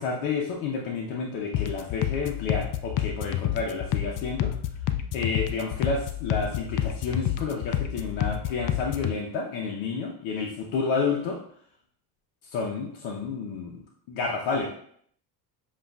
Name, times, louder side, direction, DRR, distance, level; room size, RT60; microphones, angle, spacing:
voice 1, 0.0-4.5 5.1-11.4 12.4-13.8 14.1-14.7, left 4 dB, 70° left, -1 dB, 0.8 m, -30 dB
sound 1, 1.5-9.2, left 11 dB, 45° left, 0.4 m, -29 dB
7.2 x 2.5 x 2.3 m, 0.63 s
supercardioid pair, 75°, 48 cm